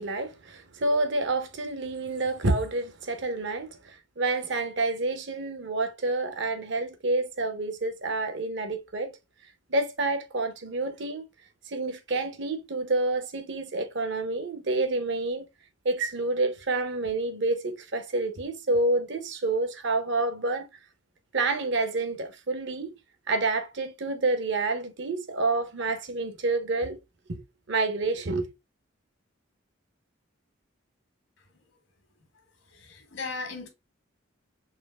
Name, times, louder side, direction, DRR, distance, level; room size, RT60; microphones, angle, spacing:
voice 1, 0.0-9.2 9.7-11.2 11.7-15.5 15.8-20.7 21.3-23.0 23.3-27.0 27.3-28.5, right 2 dB, 60° right, 0.7 m, -28 dB
voice 2, 32.7-33.7, left 4 dB, 85° left, 1.5 m, -36 dB
4.3 x 2.9 x 3.3 m
head